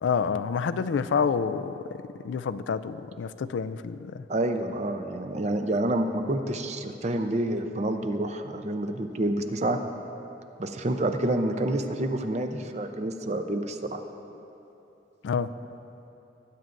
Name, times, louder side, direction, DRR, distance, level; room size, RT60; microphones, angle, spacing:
voice 1, 0.0-1.8 2.2-4.2 15.2-15.5, left 6 dB, 90° left, 13 dB, 0.3 m, -28 dB
voice 2, 4.3-9.8 10.6-14.0, right 1 dB, 40° right, 7 dB, 0.6 m, -28 dB
19.5 x 9.2 x 2.6 m, 2.9 s
head